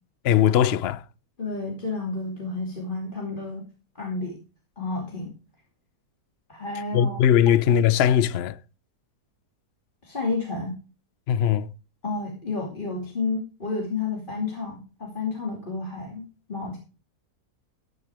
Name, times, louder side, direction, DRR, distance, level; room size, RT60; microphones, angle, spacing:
voice 1, 0.2-1.0 6.9-8.6 11.3-11.7, left 9 dB, 60° left, 0.7 m, -20 dB
voice 2, 1.4-3.6 3.9-4.4 4.8-5.3 6.5-7.2 10.0-10.7 12.0-16.8, left 3 dB, 30° left, 2.8 m, -31 dB
14.0 x 10.5 x 3.5 m
omnidirectional pair, 1.7 m